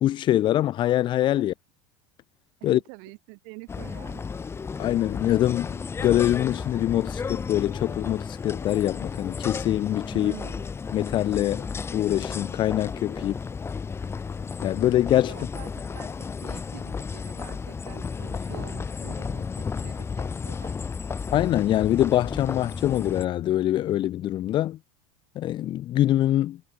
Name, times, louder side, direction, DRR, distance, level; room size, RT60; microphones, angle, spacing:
voice 1, 0.0-1.5 2.6-2.8 4.8-10.3 10.9-13.3 14.6-15.4 21.3-24.8 25.4-26.6, left 13 dB, 35° left, 0.4 m, -24 dB
voice 2, 2.6-4.2 10.1-10.7 13.1-13.4 15.3-20.7, right 40 dB or more, 65° right, 5.7 m, -46 dB
sound 1, 3.7-23.2, left 5 dB, 20° left, 0.9 m, -33 dB
supercardioid pair, 115°, 14 cm